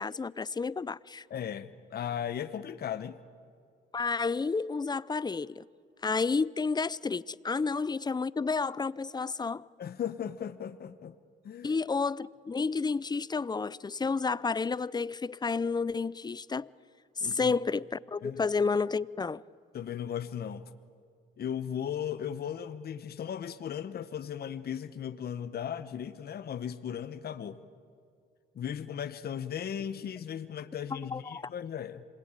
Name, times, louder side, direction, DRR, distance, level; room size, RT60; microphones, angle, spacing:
voice 1, 0.0-1.2 3.9-5.7 6.0-9.7 11.6-16.7 17.2-19.4 31.0-31.4, left 4 dB, 20° left, 0.5 m, -31 dB
voice 2, 1.3-3.2 9.8-11.1 11.4-11.7 17.2-17.5 18.2-18.4 19.7-20.7 21.4-27.6 28.5-32.0, left 9 dB, 50° left, 1.0 m, -37 dB
27.0 x 20.5 x 8.9 m
cardioid pair, 90°, 20 cm